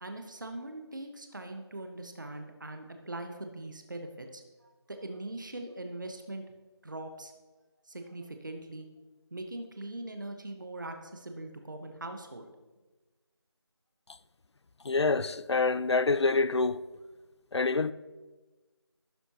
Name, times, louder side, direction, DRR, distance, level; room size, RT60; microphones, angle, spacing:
voice 1, 0.0-6.4 6.8-7.3 7.9-8.9 9.3-12.5, right 2 dB, 45° right, 0.9 m, -41 dB
voice 2, 14.8-16.8 17.5-17.9, left 3 dB, 70° left, 0.4 m, -26 dB
15.0 x 6.4 x 2.8 m
figure-of-eight pair, 175°, 15 cm